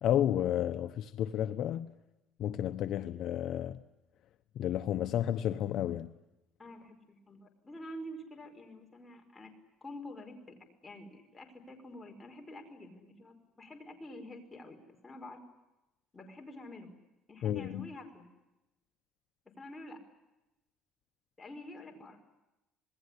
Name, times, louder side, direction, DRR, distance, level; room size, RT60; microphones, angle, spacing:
voice 1, 0.0-1.9 2.4-3.8 4.6-6.1 17.4-17.9, left 11 dB, 55° left, 1.0 m, -31 dB
voice 2, 6.6-9.5 9.8-10.5 10.8-14.8 15.0-15.4 16.1-16.9 17.3-18.3 19.4-20.0 21.4-22.2, left 1 dB, 15° left, 5.1 m, -48 dB
27.0 x 20.5 x 10.0 m
cardioid pair, 145°, 0 cm